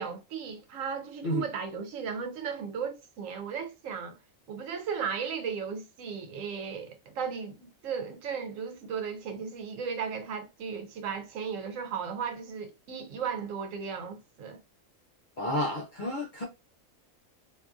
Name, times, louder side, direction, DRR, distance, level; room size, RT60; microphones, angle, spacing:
voice 1, 0.0-4.2 4.5-14.6, right 6 dB, 75° right, 1.0 m, -35 dB
voice 2, 15.4-16.4, left 1 dB, 50° left, 0.6 m, -31 dB
2.7 x 2.4 x 2.3 m
omnidirectional pair, 1.4 m